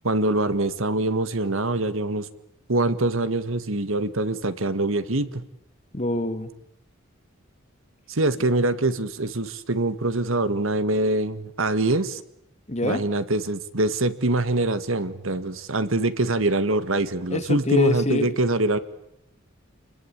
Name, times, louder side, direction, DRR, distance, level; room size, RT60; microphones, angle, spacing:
voice 1, 0.0-2.3 2.7-5.4 8.1-12.2 12.8-18.8, right 2 dB, 70° right, 13 dB, 1.7 m, -24 dB
voice 2, 5.9-6.5 12.7-13.0 17.3-18.3, left 1 dB, 30° left, 9 dB, 2.1 m, -24 dB
29.0 x 21.5 x 8.9 m, 0.76 s
head